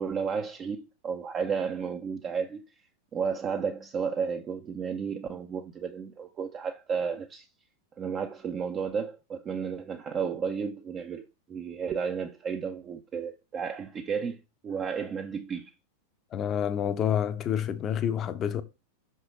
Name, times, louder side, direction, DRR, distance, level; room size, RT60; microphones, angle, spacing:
voice 1, 0.0-2.6 3.1-7.5 8.0-15.7, right 6 dB, 25° right, 0.6 m, -33 dB
voice 2, 16.3-18.6, left 9 dB, 30° left, 0.7 m, -28 dB
5.9 x 5.3 x 3.6 m
figure-of-eight pair, 90°, 0 cm